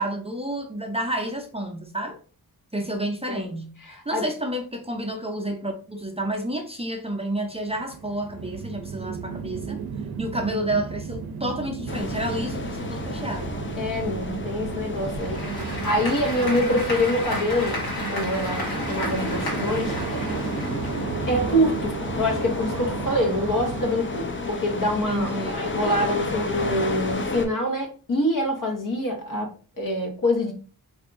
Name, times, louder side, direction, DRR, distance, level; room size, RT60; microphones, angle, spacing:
voice 1, 0.0-2.2 2.7-9.8 10.2-13.5 24.9-25.7, right 1 dB, 15° right, 0.6 m, -30 dB
voice 2, 3.8-4.2 13.8-20.3 21.3-29.5 29.8-30.5, left 1 dB, 60° left, 1.1 m, -25 dB
sound 1, 7.4-24.0, right 6 dB, 80° right, 0.5 m, -34 dB
sound 2, 11.9-27.5, left 2 dB, 30° left, 0.6 m, -32 dB
Applause / Crowd, 14.9-21.5, left 1 dB, 80° left, 1.6 m, -33 dB
3.4 x 2.7 x 2.5 m
wide cardioid pair, 70°, 37 cm